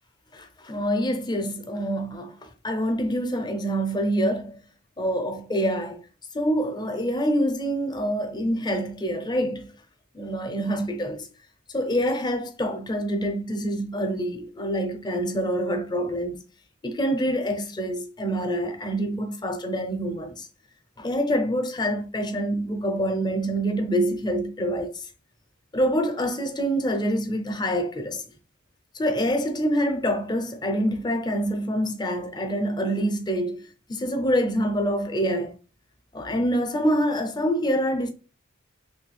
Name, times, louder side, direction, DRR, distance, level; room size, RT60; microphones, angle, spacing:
voice 1, 0.3-4.6 5.0-6.0 6.3-9.7 10.1-11.3 11.7-16.4 16.8-20.5 21.0-25.1 25.7-28.2 28.9-35.5 36.1-38.1, equal, 20° left, 0.6 m, -26 dB
3.2 x 3.0 x 3.2 m
head